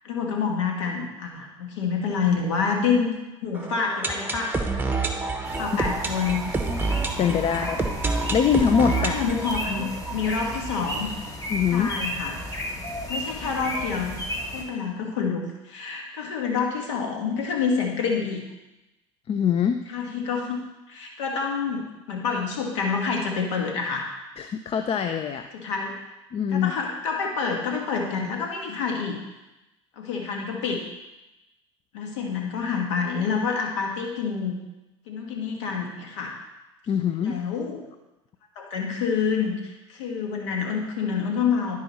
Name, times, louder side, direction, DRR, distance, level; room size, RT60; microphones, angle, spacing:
voice 1, 0.0-3.1 3.4-4.5 5.6-6.5 7.1-7.7 8.9-11.1 11.7-12.4 13.1-14.2 14.5-18.4 19.9-20.6 20.9-24.1 25.5-26.0 26.5-29.2 30.0-30.8 31.9-34.6 35.1-36.3 37.2-37.8 38.5-41.8, left 5 dB, 80° left, 1 dB, 1.4 m, -27 dB
sound 1, 3.5-11.3 11.6-11.7 11.9-12.0 12.5-12.6, right 3 dB, 10° right, 1.1 m, -29 dB
sound 2, 5.4-14.6, equal, 20° left, 1.8 m, -34 dB
voice 2, 7.2-7.8 8.3-9.2 11.5-11.9 19.3-19.8 24.4-25.5 26.3-26.7 36.9-37.4, left 7 dB, 35° left, 8 dB, 0.5 m, -23 dB
11.5 x 4.8 x 4.2 m, 1.0 s
hypercardioid pair, 80°, 16 cm